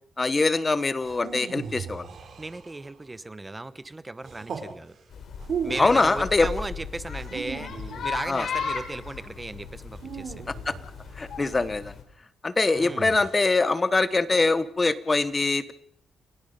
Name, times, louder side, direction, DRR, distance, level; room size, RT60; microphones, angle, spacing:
voice 1, 0.2-2.1 5.8-6.5 8.3-8.5 10.5-10.7 11.2-11.9 12.4-15.7, left 3 dB, 20° left, 14 dB, 1.0 m, -23 dB
sound 1, 1.0-3.0 4.2-4.7 5.4-6.1 7.1-8.5 9.9-11.2 12.7-13.5, right 6 dB, 50° right, 3.7 m, -37 dB
voice 2, 2.4-5.0 5.6-10.4 12.7-13.2, right 2 dB, 15° right, 14 dB, 0.9 m, -36 dB
sound 2, 5.1-12.0, left 6 dB, 60° left, 3.3 m, -36 dB
29.5 x 17.5 x 5.4 m, 0.68 s
cardioid pair, 155°, 0 cm